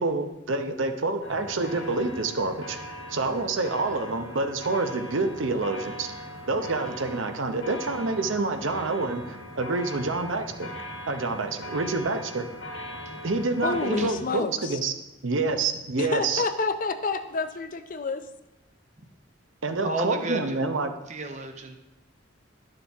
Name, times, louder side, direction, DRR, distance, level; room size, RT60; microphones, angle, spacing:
voice 1, 0.0-2.8 3.1-6.1 6.5-10.7 11.1-12.4 13.2-14.9 15.2-16.4 19.6-20.9, right 3 dB, 80° right, 7 dB, 0.8 m, -27 dB
sound 1, 1.2-14.1, equal, 70° left, 1.4 m, -40 dB
voice 2, 13.6-14.8 16.0-18.3, left 3 dB, 45° left, 9 dB, 0.5 m, -29 dB
voice 3, 19.8-20.6 21.1-21.7, right 2 dB, 35° right, 6 dB, 0.8 m, -32 dB
11.0 x 6.7 x 3.5 m, 0.98 s
head